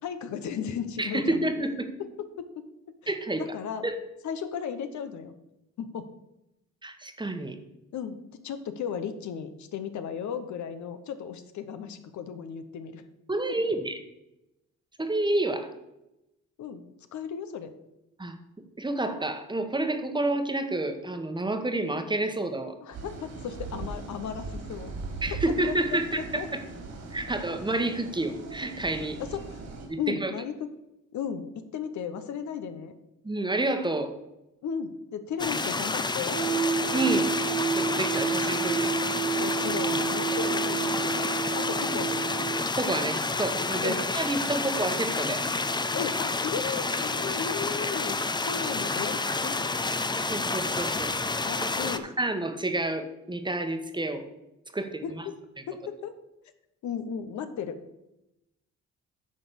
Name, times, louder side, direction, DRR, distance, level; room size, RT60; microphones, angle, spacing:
voice 1, 0.0-1.4 2.0-2.5 3.0-3.1 3.4-3.9 4.2-5.3 5.8-6.1 7.9-13.0 16.6-16.8 17.1-17.7 22.8-24.9 25.3-25.4 25.7-26.0 26.4-26.5 29.2-29.6 30.0-30.5 31.1-32.9 34.6-36.4 39.3-42.2 43.8-44.0 45.9-50.0 51.4-52.1 54.8-55.4 55.7-56.2 56.8-57.8, left 7 dB, 70° left, 10 dB, 1.0 m, -35 dB
voice 2, 1.0-1.9 3.1-3.4 3.8-3.9 6.8-7.6 13.3-13.9 15.0-15.7 18.2-18.3 18.8-22.7 25.2-26.6 27.1-29.2 29.9-30.3 33.2-34.1 36.9-37.3 37.8-38.9 42.8-45.4 50.2-51.1 51.8-51.9 52.2-54.2 54.7-55.2, right 2 dB, 15° right, 7 dB, 1.2 m, -29 dB
sound 1, 22.9-29.9, right 3 dB, 65° right, 2.9 m, -39 dB
sound 2, 35.4-52.0, left 3 dB, 15° left, 0.6 m, -29 dB
sound 3, 36.2-42.6, right 6 dB, 40° left, 2.0 m, -30 dB
10.0 x 4.2 x 6.9 m, 0.90 s
cardioid pair, 90°, 30 cm